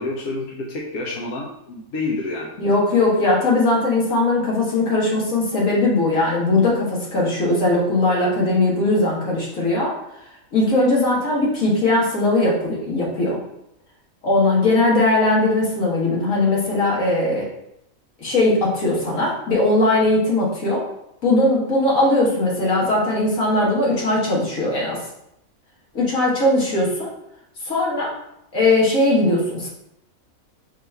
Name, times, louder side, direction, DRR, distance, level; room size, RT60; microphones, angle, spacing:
voice 1, 0.0-2.5, left 2 dB, 90° left, -2 dB, 1.1 m, -28 dB
voice 2, 2.6-10.0 10.5-13.4 14.2-17.5 18.2-20.9 21.2-25.0 25.9-27.1 27.6-28.1 28.5-29.7, left 2 dB, 75° left, -4 dB, 1.8 m, -19 dB
4.6 x 2.5 x 4.3 m, 0.79 s
omnidirectional pair, 1.4 m